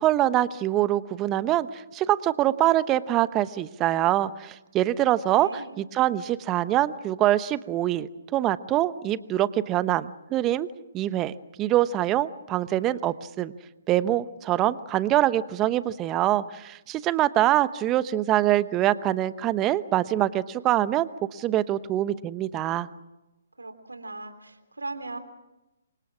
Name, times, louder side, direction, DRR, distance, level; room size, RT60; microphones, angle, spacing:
voice 1, 0.0-10.7 10.9-11.3 11.6-13.5 13.9-22.9, right 13 dB, 20° right, 16 dB, 0.9 m, -24 dB
voice 2, 5.3-5.8 23.6-25.2, right 2 dB, 85° right, 9 dB, 3.4 m, -38 dB
28.5 x 24.5 x 6.2 m, 1.0 s
figure-of-eight pair, 135°, 0 cm